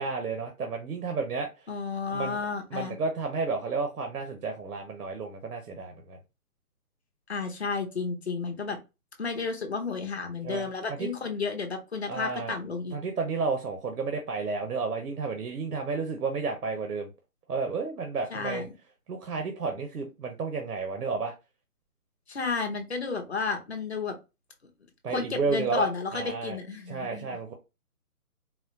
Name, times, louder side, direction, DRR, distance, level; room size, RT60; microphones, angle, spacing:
voice 1, 0.0-1.7 2.1-2.4 2.7-6.2 10.4-11.1 12.1-12.5 12.9-17.1 17.5-18.6 19.1-21.3 25.0-26.6 26.9-27.5, right 4 dB, 85° right, 4 dB, 0.9 m, -32 dB
voice 2, 1.7-3.0 7.3-8.8 9.2-13.0 18.3-18.7 22.3-24.1 25.1-27.4, left 4 dB, 45° left, 4 dB, 0.8 m, -32 dB
4.1 x 2.0 x 2.7 m, 0.26 s
hypercardioid pair, 175°, 45 cm